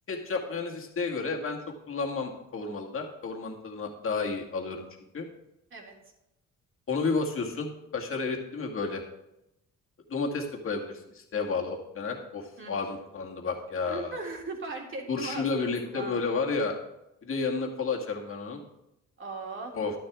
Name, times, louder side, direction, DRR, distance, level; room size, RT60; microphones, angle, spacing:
voice 1, 0.1-1.6 1.9-4.9 5.1-5.3 6.9-9.0 10.1-14.1 15.1-16.7 17.2-18.6 19.7-19.9, left 4 dB, 45° left, 1 dB, 2.1 m, -31 dB
voice 2, 12.6-13.0 13.9-16.4 19.2-19.7, right 3 dB, 40° right, 0 dB, 2.8 m, -39 dB
11.5 x 10.5 x 3.7 m, 0.87 s
cardioid pair, 90°, 30 cm